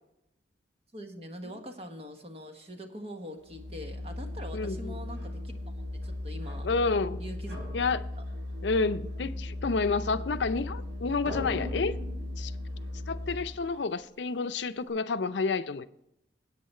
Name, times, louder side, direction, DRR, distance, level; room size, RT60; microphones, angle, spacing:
voice 1, 0.9-5.7 6.0-6.7 7.2-7.6, equal, 30° right, 1.2 m, -43 dB
Organ, 3.4-13.7, left 1 dB, 90° right, 3.7 m, -37 dB
voice 2, 4.5-4.9 6.6-7.2 7.7-8.0 8.6-11.9 12.4-12.5 13.1-15.9, left 4 dB, 80° left, 0.5 m, -29 dB
sound 1, 5.0-5.4 6.0-7.1 7.5-10.8 11.1-13.8, left 2 dB, 65° right, 4.2 m, -44 dB
10.5 x 8.7 x 4.3 m
head